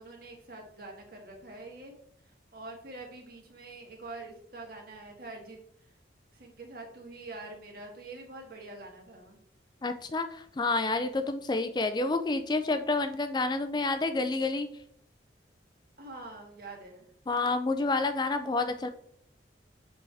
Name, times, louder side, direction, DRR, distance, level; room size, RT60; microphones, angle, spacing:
voice 1, 0.0-1.9 2.5-5.6 6.3-9.4 16.0-17.1, right 2 dB, 50° right, 0 dB, 1.7 m, -45 dB
voice 2, 9.8-14.7 17.3-18.9, left 3 dB, 20° left, 9 dB, 0.3 m, -29 dB
7.6 x 4.7 x 3.4 m, 0.66 s
head